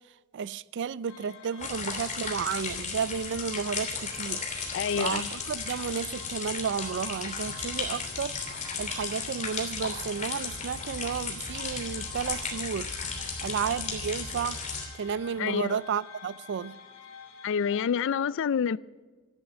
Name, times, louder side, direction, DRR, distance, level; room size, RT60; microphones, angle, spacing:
voice 1, 0.3-4.4 5.0-8.4 8.8-12.9 13.4-14.6 15.0-16.8, right 7 dB, 55° right, 0.4 m, -32 dB
sound 1, 1.1-17.9, left 6 dB, 75° left, 2.4 m, -49 dB
sound 2, 1.6-14.8, left 5 dB, 35° left, 3.0 m, -35 dB
voice 2, 4.7-5.3 15.4-15.8 17.4-18.8, left 7 dB, 55° left, 0.4 m, -28 dB
sound 3, 7.5-14.2, equal, 10° right, 3.3 m, -48 dB
14.5 x 10.5 x 8.0 m
head